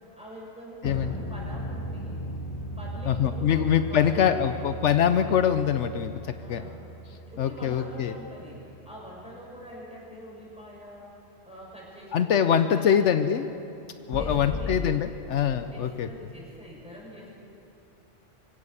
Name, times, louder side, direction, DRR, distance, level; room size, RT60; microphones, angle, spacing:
voice 1, 0.2-2.2 2.6-4.7 6.4-6.8 7.1-12.5 12.8-13.4 13.7-13.8 14.1-14.8 15.7-17.3, equal, 5° right, -4 dB, 6.6 m, -44 dB
sound 1, 0.8-9.2 14.1-14.8, equal, 25° left, 1.4 m, -37 dB
voice 2, 3.1-6.6 7.4-8.1 12.1-13.5 14.1-16.1, left 8 dB, 75° left, 10 dB, 1.0 m, -24 dB
24.5 x 16.5 x 7.2 m, 2.8 s
omnidirectional pair, 1.2 m